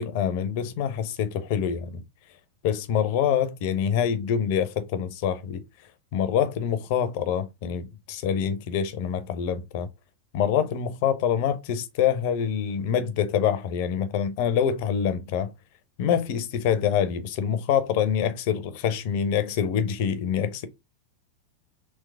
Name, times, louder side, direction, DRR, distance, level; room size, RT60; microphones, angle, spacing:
voice 1, 0.0-2.0 2.6-5.6 6.1-9.9 10.3-15.5 16.0-20.7, left 8 dB, 45° left, 0.6 m, -25 dB
3.4 x 3.0 x 3.4 m
figure-of-eight pair, 90°, 0 cm